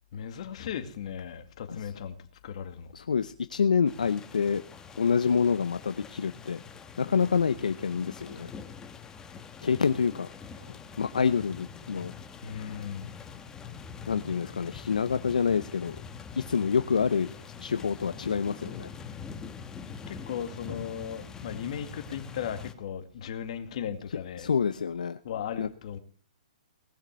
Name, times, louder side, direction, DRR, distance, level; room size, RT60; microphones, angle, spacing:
voice 1, 0.1-2.9 12.4-13.2 20.1-24.5 25.2-26.0, left 8 dB, 60° left, 2.1 m, -37 dB
voice 2, 2.9-4.6 5.0-6.6 7.0-8.5 9.6-10.3 10.6-12.1 14.1-16.0 16.4-18.9 24.4-25.2 25.6-25.7, left 6 dB, 85° left, 0.7 m, -27 dB
sound 1, 3.9-22.7, left 6 dB, 15° left, 1.3 m, -44 dB
19.0 x 6.7 x 7.5 m
hypercardioid pair, 130°, 4 cm